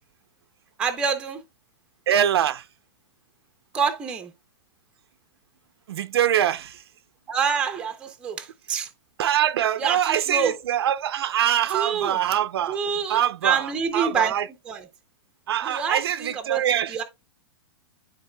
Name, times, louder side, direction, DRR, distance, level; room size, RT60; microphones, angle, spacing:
voice 1, 0.8-1.4 3.7-4.3 7.3-8.9 9.8-10.5 11.7-12.2 12.7-14.3 14.7-14.9 15.6-16.6 16.9-17.0, right 6 dB, 5° right, 0.6 m, -26 dB
voice 2, 2.1-2.6 5.9-6.8 9.2-12.8 13.1-14.5 15.5-17.0, right 10 dB, 85° right, 0.6 m, -24 dB
11.5 x 3.9 x 2.2 m
supercardioid pair, 180°, 13 cm